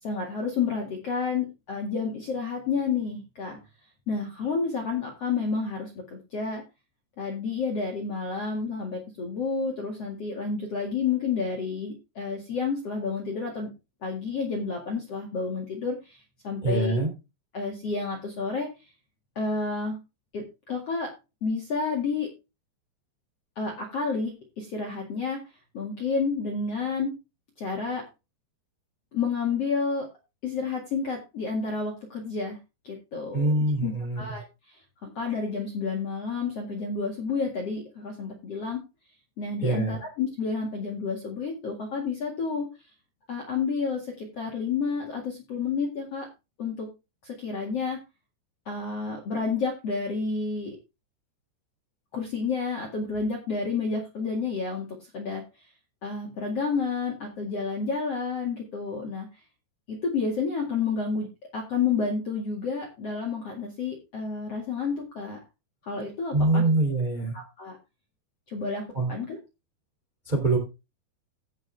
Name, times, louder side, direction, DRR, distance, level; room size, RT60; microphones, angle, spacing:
voice 1, 0.0-3.6 4.1-6.6 7.2-13.7 14.0-16.2 16.4-17.0 17.5-18.7 19.4-20.0 20.3-21.1 21.4-22.3 23.6-25.4 25.7-27.1 27.6-28.0 29.1-30.1 30.4-32.6 32.8-33.5 33.8-38.8 39.4-42.7 43.3-46.3 46.6-46.9 47.2-48.0 48.7-50.8 52.1-54.9 55.1-55.4 56.0-59.3 59.9-61.3 61.5-65.4 65.8-66.6 67.3-67.8 68.5-68.8 69.1-69.4, left 4 dB, 45° left, 0 dB, 2.2 m, -30 dB
voice 2, 16.6-17.1 33.3-34.2 39.6-40.0 66.3-67.4 68.9-69.1 70.3-70.6, right 2 dB, 15° right, 2 dB, 2.0 m, -24 dB
15.5 x 6.3 x 3.4 m, 0.27 s
omnidirectional pair, 5.3 m